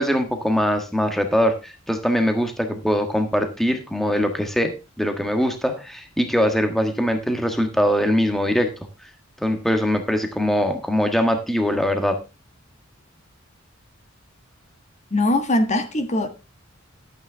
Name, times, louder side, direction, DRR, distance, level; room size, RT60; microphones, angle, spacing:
voice 1, 0.0-8.7 9.0-9.1 9.4-12.2, equal, ahead, 1.4 m, -22 dB
voice 2, 15.1-16.3, left 1 dB, 35° left, 1.6 m, -21 dB
12.5 x 8.8 x 3.4 m
head